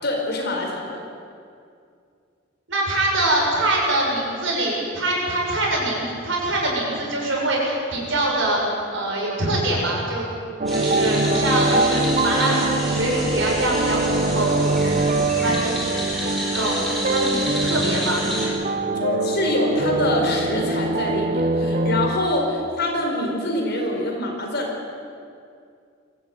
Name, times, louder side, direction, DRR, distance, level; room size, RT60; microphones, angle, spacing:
voice 1, 0.0-1.0 18.9-24.7, left 1 dB, 55° left, 1 dB, 4.8 m, -25 dB
voice 2, 2.7-8.6 8.9-10.3 10.7-15.0 15.3-15.8 16.5-16.8 17.1-18.2, right 1 dB, 65° right, -2 dB, 7.0 m, -24 dB
sound 1, 10.6-22.1, right 2 dB, 40° right, 1.1 m, -23 dB
sound 2, 10.7-18.5, equal, ahead, 5.5 m, -30 dB
22.5 x 15.5 x 9.4 m, 2.4 s
head